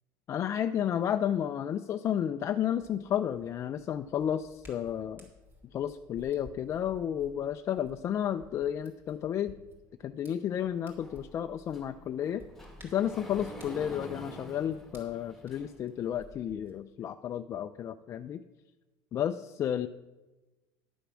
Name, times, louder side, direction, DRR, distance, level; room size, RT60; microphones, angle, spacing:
voice 1, 0.3-5.3 5.7-9.5 10.0-12.4 12.8-18.4 19.1-19.9, left 9 dB, 30° left, 9 dB, 0.3 m, -32 dB
Hands, 2.7-16.7, equal, 25° right, 2.9 m, -57 dB
Sliding door, 11.0-16.0, left 1 dB, 5° left, 1.7 m, -47 dB
11.0 x 6.7 x 6.1 m, 1.1 s
cardioid pair, 150°, 10 cm